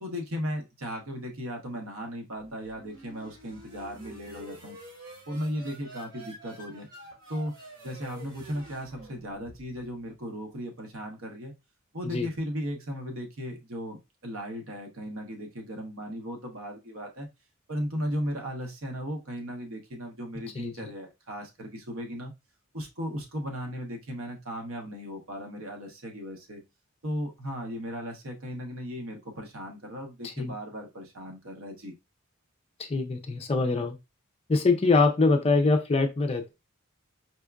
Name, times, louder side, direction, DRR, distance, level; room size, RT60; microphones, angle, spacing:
voice 1, 0.0-4.8 5.3-6.9 7.3-7.5 7.8-11.5 11.9-17.3 17.7-22.3 22.7-26.6 27.0-31.9, equal, 65° right, 3 dB, 0.9 m, -36 dB
sound 1, 2.3-10.0, right 1 dB, 45° right, 1.6 m, -48 dB
voice 2, 32.9-34.0 34.5-36.5, left 3 dB, 25° left, 6 dB, 0.4 m, -24 dB
4.3 x 2.4 x 2.3 m, 0.24 s
head